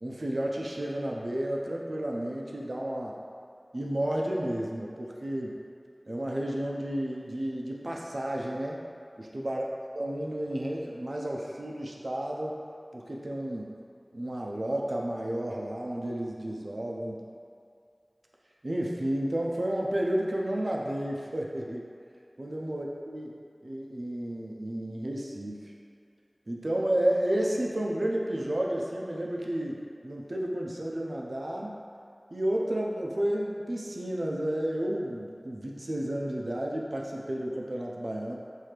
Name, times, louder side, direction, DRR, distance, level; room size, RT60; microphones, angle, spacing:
voice 1, 0.0-3.2 3.7-5.6 6.1-8.8 9.2-9.7 10.0-12.6 12.9-13.7 14.1-17.2 18.6-21.9 22.4-23.3 23.6-25.6 26.5-31.8 32.3-38.4, right 1 dB, 75° right, -2 dB, 0.5 m, -31 dB
5.8 x 2.7 x 3.3 m, 2.4 s
wide cardioid pair, 40°, 0 cm